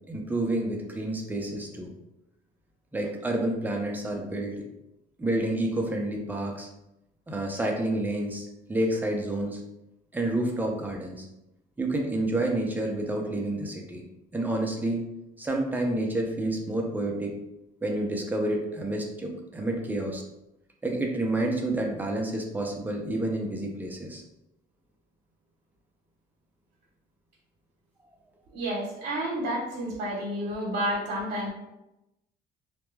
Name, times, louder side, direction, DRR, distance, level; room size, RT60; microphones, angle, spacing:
voice 1, 0.1-1.9 2.9-4.5 5.2-6.7 7.3-9.6 10.1-11.3 11.8-14.0 14.3-15.1 15.4-17.4 17.8-20.2 20.8-24.2, right 1 dB, 10° right, 1 dB, 0.5 m, -29 dB
voice 2, 28.5-31.5, right 1 dB, 60° right, -5 dB, 0.9 m, -30 dB
2.2 x 2.1 x 3.1 m, 0.91 s
cardioid pair, 110°, 17 cm